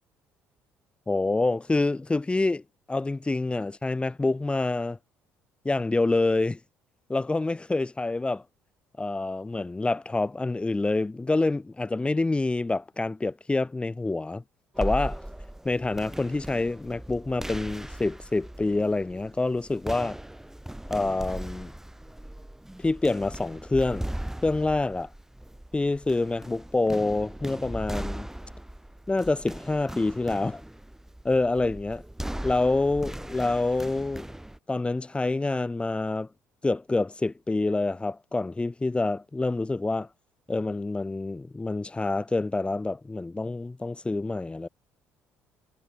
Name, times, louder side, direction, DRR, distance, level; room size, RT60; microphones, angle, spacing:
voice 1, 1.1-2.6 2.9-5.0 5.6-6.6 7.1-8.4 9.0-14.4 14.8-15.2 15.6-20.2 20.9-21.7 22.8-24.1 24.4-25.1 25.7-28.3 29.1-30.6 31.2-32.0 32.4-34.3 34.7-36.3 36.6-40.1 40.5-44.7, left 2 dB, 15° left, 0.7 m, -27 dB
sound 1, 14.8-34.6, right 1 dB, 5° right, 3.8 m, -38 dB
hypercardioid pair, 55°, 6 cm